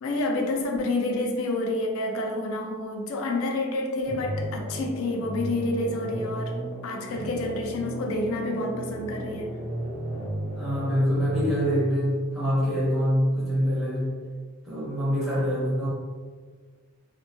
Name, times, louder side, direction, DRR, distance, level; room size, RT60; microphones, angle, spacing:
voice 1, 0.0-9.5, left 2 dB, 65° left, 2 dB, 0.4 m, -29 dB
sound 1, 4.1-11.6, right 1 dB, 65° right, 0.7 m, -34 dB
voice 2, 10.6-14.2 14.7-15.9, equal, ahead, -8 dB, 0.5 m, -25 dB
2.5 x 2.1 x 2.6 m, 1.5 s
head